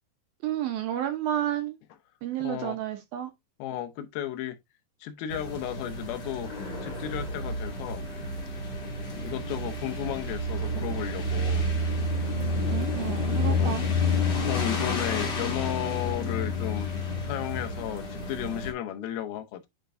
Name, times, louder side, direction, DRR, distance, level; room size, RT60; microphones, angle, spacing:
voice 1, 0.4-1.8 2.2-3.3 12.7-13.9, right 11 dB, 75° right, 2.5 m, -31 dB
voice 2, 2.4-2.8 3.6-4.6 5.0-6.5 6.8-8.0 9.1-11.6 13.4-13.7 14.5-16.9 17.2-19.7, left 11 dB, 75° left, 2.5 m, -34 dB
sound 1, 5.3-18.7, left 2 dB, 35° left, 1.9 m, -30 dB
9.0 x 4.5 x 2.5 m
omnidirectional pair, 4.7 m